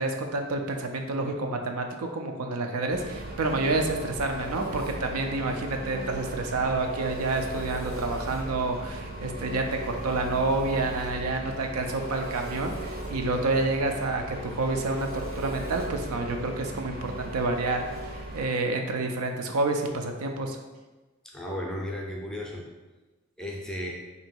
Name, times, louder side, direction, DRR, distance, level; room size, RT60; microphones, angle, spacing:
voice 1, 0.0-20.6, right 2 dB, 85° right, 4 dB, 0.5 m, -29 dB
Engine, 2.9-18.5, right 1 dB, 40° right, 0.6 m, -37 dB
voice 2, 21.2-22.7 23.4-24.0, left 1 dB, 5° left, -2 dB, 0.4 m, -34 dB
3.0 x 2.7 x 4.4 m, 1.2 s
head